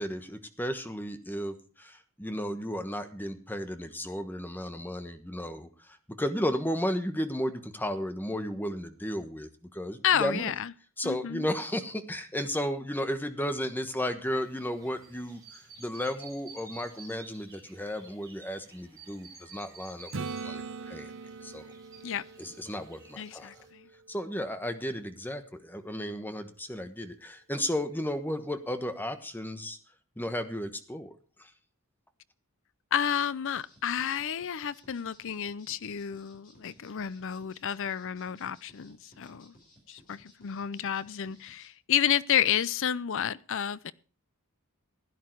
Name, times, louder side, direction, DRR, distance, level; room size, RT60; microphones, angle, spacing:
voice 1, 0.0-10.5 11.0-21.1 21.4-21.7 22.4-23.5 24.1-29.8 30.2-31.5, equal, 10° left, 1.2 m, -34 dB
voice 2, 10.0-10.7 11.0-11.5 22.0-22.2 23.2-23.9 32.9-39.5 39.9-43.9, left 9 dB, 60° left, 0.5 m, -30 dB
sound 1, 14.2-23.7, right 4 dB, 15° right, 4.7 m, -53 dB
Acoustic guitar / Strum, 20.1-23.9 28.7-28.8, right 4 dB, 60° right, 0.8 m, -41 dB
sound 2, 33.5-41.7, left 1 dB, 40° left, 4.6 m, -59 dB
15.5 x 10.5 x 4.6 m
head